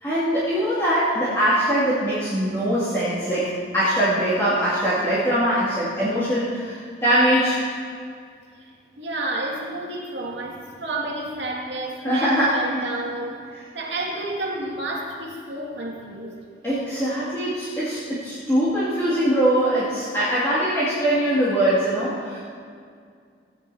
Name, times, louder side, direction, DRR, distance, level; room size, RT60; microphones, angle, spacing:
voice 1, 0.0-7.7 12.0-12.8 13.5-13.6 16.6-22.4, right 1 dB, 15° left, -14 dB, 2.4 m, -22 dB
voice 2, 9.0-16.4, right 2 dB, 70° right, -3 dB, 2.3 m, -30 dB
17.0 x 9.9 x 2.8 m, 2.2 s
head